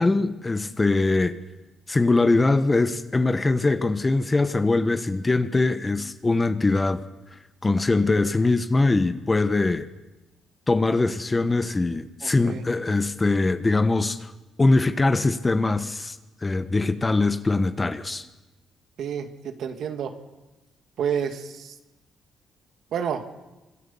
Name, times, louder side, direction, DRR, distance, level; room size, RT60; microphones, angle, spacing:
voice 1, 0.0-1.4 1.9-7.0 7.6-9.9 10.7-14.3 14.6-16.2 16.4-18.2, left 3 dB, 20° left, 1.1 m, -22 dB
voice 2, 12.2-12.6 19.0-20.1 21.0-21.8 22.9-23.2, right 8 dB, 70° right, 1.9 m, -29 dB
25.5 x 14.5 x 7.1 m
cardioid pair, 90°, 0 cm